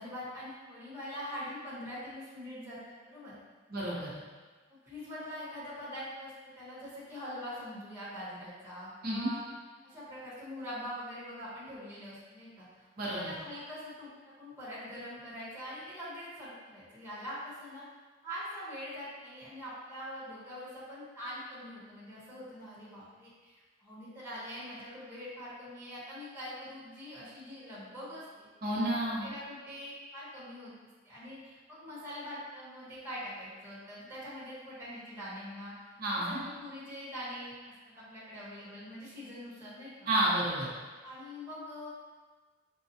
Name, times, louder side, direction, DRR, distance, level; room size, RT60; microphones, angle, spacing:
voice 1, 0.0-3.3 4.8-9.4 9.8-17.8 18.2-28.5 28.9-30.7 31.0-37.5 37.9-40.1 41.0-41.9, equal, 10° right, -11 dB, 1.1 m, -43 dB
voice 2, 3.7-4.1 9.0-9.3 13.0-13.3 28.6-29.3 36.0-36.4 40.1-40.7, right 1 dB, 50° right, -7 dB, 0.9 m, -30 dB
5.4 x 2.3 x 2.7 m, 1.3 s
head